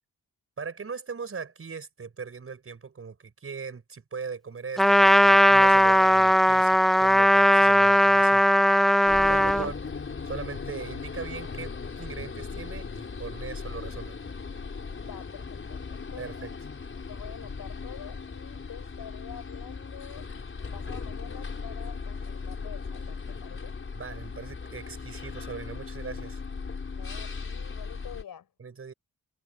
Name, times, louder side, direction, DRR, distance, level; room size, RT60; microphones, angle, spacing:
voice 1, 0.6-8.4 9.3-9.8 10.2-14.2 16.2-16.5 23.9-26.4 28.6-28.9, right 5 dB, 40° right, 5.6 m, -39 dB
Trumpet, 4.8-9.7, equal, ahead, 0.4 m, -18 dB
sound 1, 9.1-28.2, left 5 dB, 35° left, 5.0 m, -38 dB
voice 2, 15.0-16.5 17.1-20.2 20.6-23.8 26.9-28.5, left 9 dB, 85° left, 7.1 m, -47 dB
wide cardioid pair, 125°, 34 cm